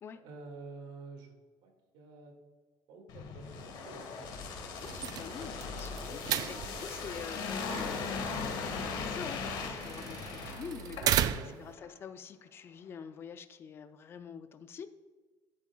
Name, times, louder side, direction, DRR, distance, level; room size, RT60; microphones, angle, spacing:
voice 1, 0.2-1.3 1.6-2.4 2.9-4.5 11.3-11.5, right 3 dB, 85° right, 3 dB, 2.0 m, -49 dB
sound 1, 3.1-11.4 11.8-11.9, left 5 dB, 65° left, 1.4 m, -39 dB
voice 2, 4.8-14.9, left 7 dB, 30° left, 10 dB, 0.4 m, -46 dB
sound 2, 4.8-11.7, right 11 dB, 50° right, 0.3 m, -36 dB
11.0 x 8.6 x 2.3 m, 1.3 s
cardioid pair, 170°, 8 cm